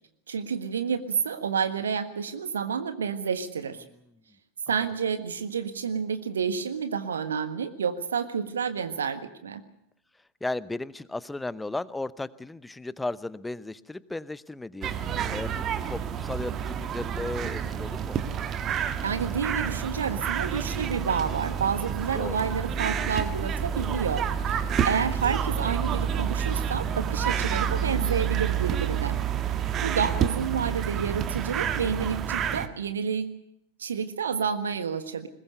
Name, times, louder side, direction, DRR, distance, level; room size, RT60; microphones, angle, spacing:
voice 1, 0.3-3.8 4.7-9.6 19.0-29.2 29.8-33.3 33.8-35.3, right 6 dB, 70° right, 10 dB, 1.5 m, -29 dB
voice 2, 10.4-18.2 22.1-22.5, left 2 dB, 5° left, 18 dB, 0.8 m, -35 dB
sound 1, 14.8-32.7, right 8 dB, 30° right, 1.4 m, -29 dB
21.5 x 21.0 x 6.7 m, 0.76 s
figure-of-eight pair, 90°, 0 cm